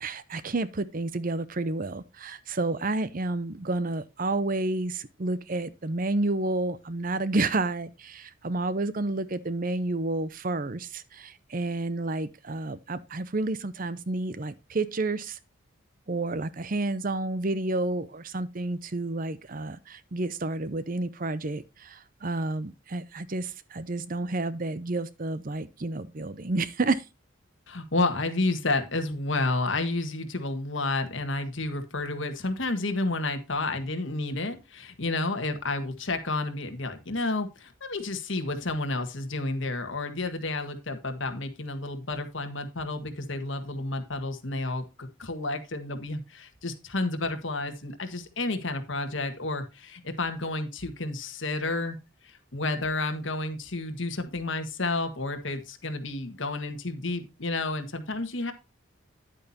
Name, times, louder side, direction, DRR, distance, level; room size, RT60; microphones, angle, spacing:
voice 1, 0.0-15.4 16.1-27.0, right 2 dB, 40° right, 0.6 m, -30 dB
voice 2, 27.7-52.0 52.2-58.5, left 2 dB, 65° left, 1.7 m, -31 dB
10.5 x 8.7 x 2.8 m
head